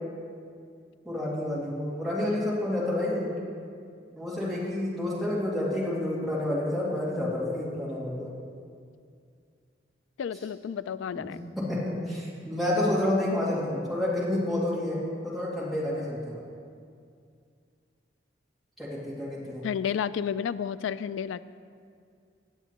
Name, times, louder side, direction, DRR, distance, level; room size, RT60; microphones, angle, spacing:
voice 1, 1.0-3.3 4.2-8.3 11.1-11.3 11.6-15.0 15.2-16.4 18.8-19.6, left 1 dB, ahead, -8 dB, 2.4 m, -29 dB
voice 2, 10.2-11.4 19.6-21.4, left 7 dB, 85° left, 15 dB, 0.3 m, -31 dB
17.5 x 8.0 x 2.9 m, 2.2 s
head